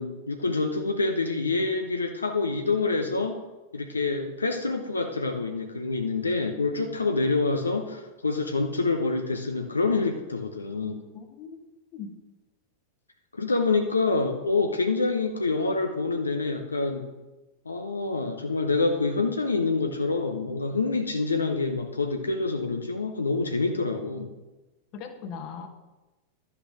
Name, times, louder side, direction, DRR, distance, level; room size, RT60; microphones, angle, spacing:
voice 1, 0.0-3.4 3.7-11.0 13.4-17.1 17.7-24.3, left 3 dB, 75° left, 4 dB, 0.8 m, -26 dB
voice 2, 11.1-12.1 24.9-25.7, left 6 dB, 40° left, 7 dB, 1.2 m, -40 dB
11.5 x 5.8 x 6.1 m, 1.1 s
figure-of-eight pair, 90°, 0 cm